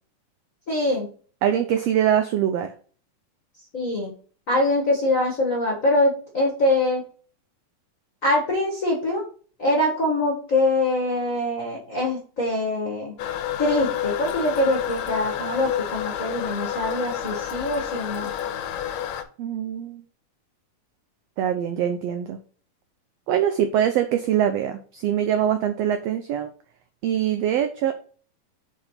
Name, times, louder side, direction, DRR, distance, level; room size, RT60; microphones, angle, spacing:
voice 1, 0.7-1.1 3.7-4.1 4.5-7.0 8.2-9.2 9.6-13.1 13.6-18.3, left 1 dB, 40° left, -2 dB, 1.1 m, -23 dB
voice 2, 1.4-2.7 19.4-20.0 21.4-22.4 23.3-26.5 27.0-27.9, right 10 dB, 85° right, 8 dB, 1.4 m, -23 dB
Toilet flush, 13.2-19.2, left 10 dB, 75° left, 1.8 m, -29 dB
5.5 x 4.9 x 5.6 m, 0.42 s
omnidirectional pair, 3.6 m